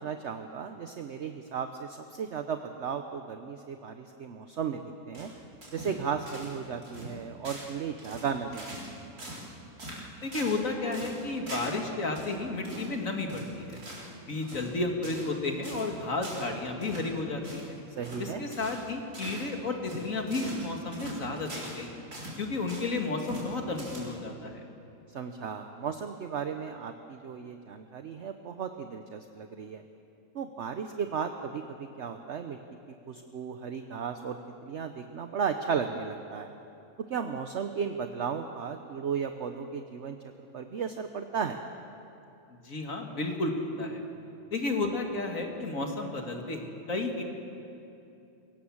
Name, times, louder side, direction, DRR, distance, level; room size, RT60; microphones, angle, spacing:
voice 1, 0.0-5.3 5.7-9.0 18.0-18.5 25.1-29.8 30.3-32.6 33.1-34.4 34.6-36.5 37.1-40.2 40.5-41.6, right 6 dB, 55° right, 7 dB, 1.0 m, -35 dB
sound 1, 5.1-6.0 6.3-6.6 6.8-7.1 7.4-7.7 8.0-8.9 9.2-9.5 9.8-10.6 10.9-11.8 12.1-12.3 12.6-12.9 13.3-14.1 14.4-14.7 15.0-15.3 15.6-15.9 16.2-16.5 16.8-17.1 17.4-17.7 18.0-18.2 18.5-18.8 19.1-19.5 19.8-21.8 22.1-22.9 23.2-23.5 23.7-24.3, right 1 dB, 80° right, 4.7 m, -42 dB
voice 2, 10.2-13.8 14.3-17.8 18.2-21.9 22.4-24.6 42.5-44.0 44.5-47.2, left 2 dB, 60° left, 2 dB, 2.4 m, -32 dB
23.5 x 18.0 x 7.3 m, 2.7 s
omnidirectional pair, 1.6 m